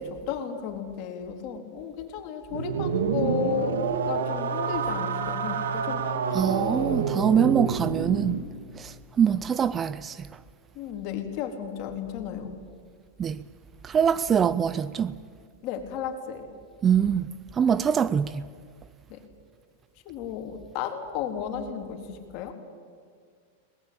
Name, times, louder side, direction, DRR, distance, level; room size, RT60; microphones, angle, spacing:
voice 1, 0.0-3.8 4.1-6.5 10.7-12.6 15.6-16.5 19.1-19.2 20.1-22.5, left 8 dB, 45° left, 3.6 m, -34 dB
sound 1, 2.5-8.4, right 5 dB, 85° right, 2.0 m, -28 dB
voice 2, 6.3-8.4 8.8-10.2 13.2-13.4 13.8-15.1 16.8-17.3 17.6-18.4, right 8 dB, 20° right, 0.5 m, -24 dB
21.5 x 19.5 x 8.8 m
hypercardioid pair, 130°, 0 cm